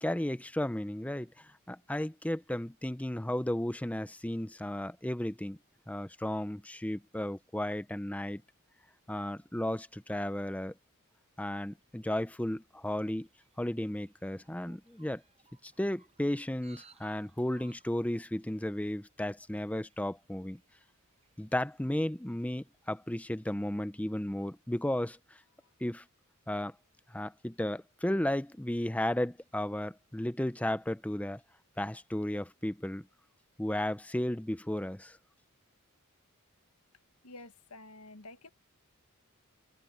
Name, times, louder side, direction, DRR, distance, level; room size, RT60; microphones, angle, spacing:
voice 1, 0.0-5.6 5.9-8.4 9.1-10.7 11.4-13.3 13.6-15.2 15.6-20.6 21.4-25.2 25.8-26.0 26.5-26.7 27.1-31.4 31.8-33.1 33.6-35.2, left 1 dB, 5° left, 0.6 m, -34 dB
sound 1, 12.6-23.0, right 5 dB, 30° right, 8.0 m, -66 dB
voice 2, 37.2-38.5, left 2 dB, 85° left, 1.3 m, -49 dB
open air
head